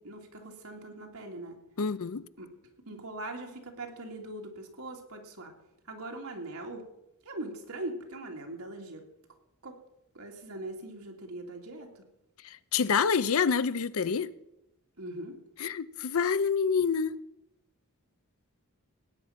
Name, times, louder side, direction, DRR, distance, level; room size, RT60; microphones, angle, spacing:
voice 1, 0.0-1.6 2.4-2.5 2.9-5.5 5.9-6.8 7.2-9.0 9.6-9.8 10.1-11.9 15.0-15.4, right 2 dB, 75° right, 2.5 m, -41 dB
voice 2, 1.8-2.2 12.4-14.3 15.6-17.2, left 6 dB, 65° left, 0.6 m, -27 dB
18.0 x 9.2 x 5.8 m
head